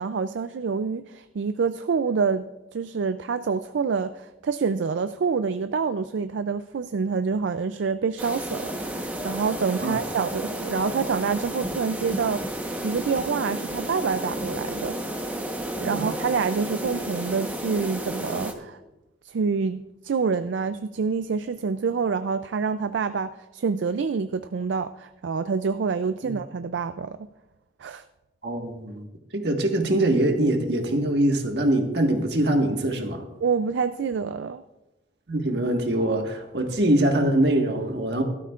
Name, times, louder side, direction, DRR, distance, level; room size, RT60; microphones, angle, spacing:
voice 1, 0.0-2.5 2.7-15.0 15.8-18.8 19.2-27.2 27.8-28.0 33.4-34.6, right 5 dB, 80° right, 0.4 m, -27 dB
sound 1, 8.2-18.5, right 1 dB, 10° right, 1.0 m, -32 dB
voice 2, 28.4-29.1 29.3-33.2 35.3-38.2, right 1 dB, 65° right, 1.6 m, -23 dB
17.0 x 12.5 x 2.5 m
head